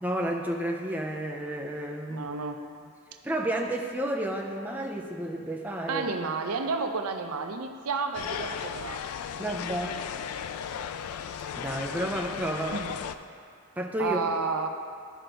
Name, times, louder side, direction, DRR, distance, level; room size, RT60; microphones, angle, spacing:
voice 1, 0.0-2.3 3.2-6.1 9.4-10.0 11.5-12.8 13.8-14.2, right 1 dB, 10° right, 0 dB, 0.4 m, -31 dB
voice 2, 2.1-2.6 5.9-9.0 12.7-12.9 14.0-14.7, right 4 dB, 85° right, 6 dB, 0.5 m, -31 dB
sound 1, 8.1-13.2, left 8 dB, 85° left, 0.3 m, -36 dB
12.5 x 5.0 x 3.4 m, 2.3 s
head